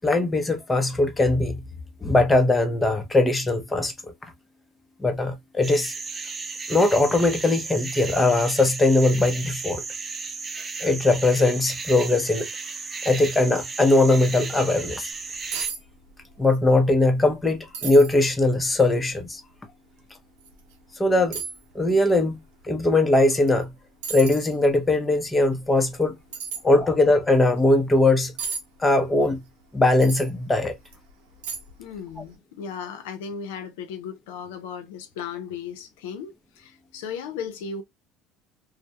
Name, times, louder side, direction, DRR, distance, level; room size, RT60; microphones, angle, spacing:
voice 1, 0.0-1.6 2.0-3.9 5.0-5.9 6.7-9.8 10.8-12.5 13.0-15.1 16.4-19.4 21.0-21.4 21.7-22.4 22.6-23.7 24.1-26.1 26.6-28.3 28.8-29.4 29.7-30.7, left 2 dB, 15° left, 0.6 m, -20 dB
sound 1, 5.6-15.7, right 4 dB, 25° right, 0.5 m, -34 dB
sound 2, 15.2-15.3 15.5-15.8 16.1-16.6 17.0-17.1 17.7-18.2 18.8-18.9 20.4-20.5 21.3-21.6 23.5-23.6 24.0-24.5 26.3-26.6 28.4-28.6 30.0-30.3 30.9-31.0 31.4-31.8 32.1-32.3, right 6 dB, 85° right, 0.7 m, -33 dB
voice 2, 31.8-37.8, left 6 dB, 85° left, 0.5 m, -36 dB
2.2 x 2.1 x 2.8 m
supercardioid pair, 95°, 0 cm